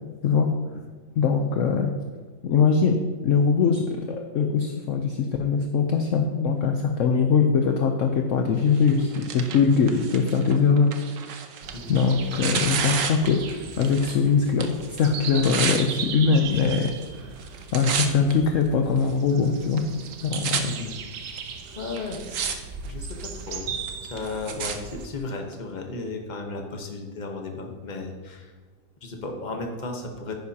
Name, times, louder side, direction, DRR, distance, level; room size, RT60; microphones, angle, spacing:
voice 1, 1.2-1.9 2.4-3.0 3.2-3.8 4.1-10.9 11.9-16.9 17.7-19.9 20.2-20.7, left 5 dB, 60° left, 4 dB, 0.9 m, -22 dB
Tearing, 8.7-14.2 14.5-15.8 16.6-17.1 17.4-18.3 19.0-19.1 19.8-19.9 20.0-20.6 21.4-21.5 22.0-22.6 22.9-23.3 23.9-24.8 25.5-25.6, right 6 dB, 60° right, 1.1 m, -31 dB
sound 1, 11.6-25.1, right 6 dB, 85° right, 1.4 m, -38 dB
voice 2, 11.7-12.0 20.6-21.0 21.7-22.5 22.8-23.7 24.0-28.5 29.0-30.4, left 3 dB, 30° left, 2 dB, 1.1 m, -35 dB
10.5 x 9.6 x 2.8 m, 1.4 s
omnidirectional pair, 1.7 m